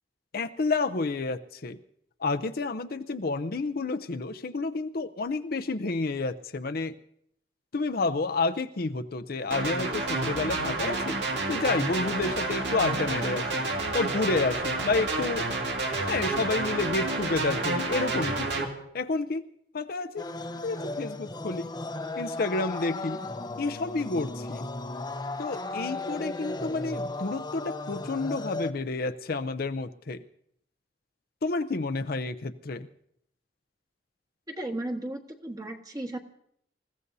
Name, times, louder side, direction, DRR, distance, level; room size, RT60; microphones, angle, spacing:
voice 1, 0.3-1.8 2.2-7.0 7.7-11.2 11.5-13.6 13.9-15.5 16.1-18.7 18.9-19.5 19.7-20.3 20.6-21.7 22.2-23.2 23.6-24.7 25.4-30.2 31.4-32.9, left 3 dB, 55° left, 9 dB, 0.6 m, -30 dB
sound 1, 9.5-18.7, right 2 dB, 85° right, 2.1 m, -29 dB
sound 2, 20.2-28.7, left 2 dB, 25° left, 0.8 m, -35 dB
voice 2, 34.5-36.2, right 1 dB, 20° right, 4 dB, 1.4 m, -35 dB
27.5 x 15.5 x 2.7 m, 0.71 s
head